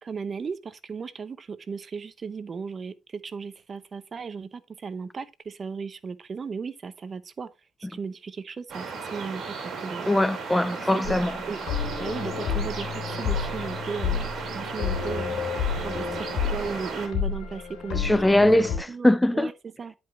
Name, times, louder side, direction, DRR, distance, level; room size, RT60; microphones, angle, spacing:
voice 1, 0.0-7.5 7.8-10.1 10.6-11.2 11.5-11.6 12.0-15.4 15.8-18.2 18.9-19.9, right 5 dB, 40° right, 0.7 m, -36 dB
sound 1, 8.7-17.1, right 5 dB, 65° right, 2.7 m, -35 dB
voice 2, 10.1-11.3 18.0-19.5, left 1 dB, 10° left, 0.4 m, -21 dB
sound 2, 11.0-18.8, left 7 dB, 85° left, 3.0 m, -30 dB
10.0 x 5.2 x 3.0 m
cardioid pair, 90°, 0 cm